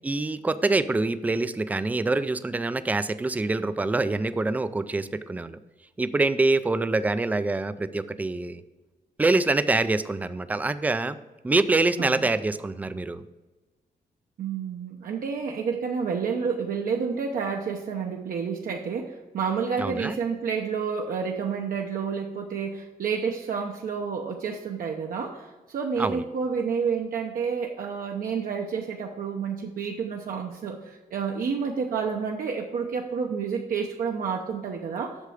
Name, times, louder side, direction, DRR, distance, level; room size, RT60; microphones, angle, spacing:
voice 1, 0.0-5.6 6.0-8.6 9.2-11.2 11.4-13.2 19.8-20.2 26.0-26.2, right 2 dB, 10° right, 13 dB, 0.3 m, -25 dB
voice 2, 12.0-12.3 14.4-35.2, right 6 dB, 65° right, 1 dB, 0.8 m, -29 dB
8.2 x 6.7 x 4.9 m, 1.2 s
wide cardioid pair, 165°, 16 cm